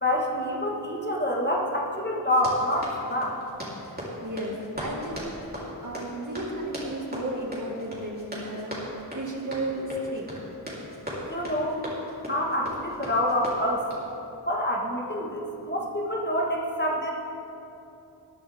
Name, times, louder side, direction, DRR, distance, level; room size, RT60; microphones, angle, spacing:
voice 1, 0.0-3.4 11.3-11.8 12.3-13.8 14.5-17.1, left 1 dB, 25° left, -2 dB, 1.5 m, -27 dB
Run, 2.3-14.1, equal, 20° right, 3.3 m, -38 dB
voice 2, 3.9-10.3, right 1 dB, 45° right, -1 dB, 1.9 m, -34 dB
19.5 x 10.5 x 3.5 m, 2.8 s
wide cardioid pair, 75°, 45 cm